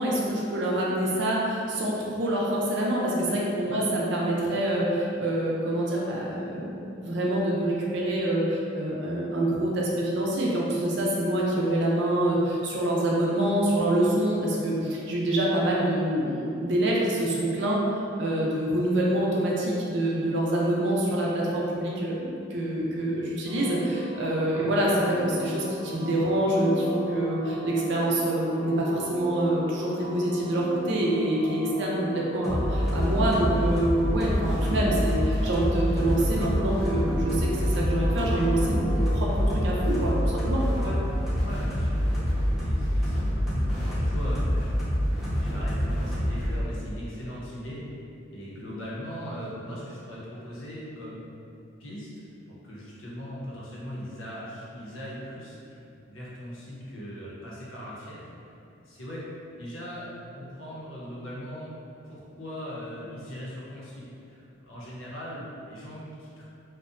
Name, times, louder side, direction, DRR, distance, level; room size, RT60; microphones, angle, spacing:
voice 1, 0.0-17.8 18.2-40.1 40.5-40.6, right 1 dB, 60° right, -4 dB, 0.4 m, -26 dB
sound 1, 23.5-41.1, equal, 15° left, 0.8 m, -38 dB
sound 2, 32.4-46.6, equal, ahead, 0.5 m, -26 dB
voice 2, 41.4-47.8 48.3-51.2 51.8-52.1 52.5-58.3 58.8-59.2 59.6-60.1 60.3-61.7 62.0-66.4, equal, 80° left, -7 dB, 0.6 m, -40 dB
2.6 x 2.1 x 2.4 m, 2.6 s
head